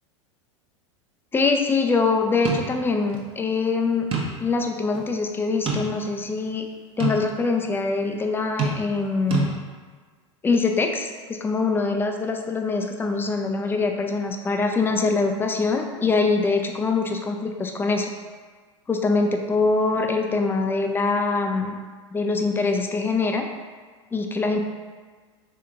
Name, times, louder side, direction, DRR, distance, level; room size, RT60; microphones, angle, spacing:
voice 1, 1.3-4.1 4.4-6.6 7.0-9.5 10.4-18.1 18.9-21.8 22.1-23.5 24.1-24.6, left 4 dB, 15° left, 4 dB, 0.4 m, -23 dB
sound 1, 2.4-2.7 3.1-3.2 4.1-4.5 4.9-5.0 5.7-6.2 7.0-7.2 8.6-9.0 9.3-9.5, right 4 dB, 35° right, 0.8 m, -26 dB
4.5 x 3.3 x 2.5 m, 1.5 s
hypercardioid pair, 95°, 16 cm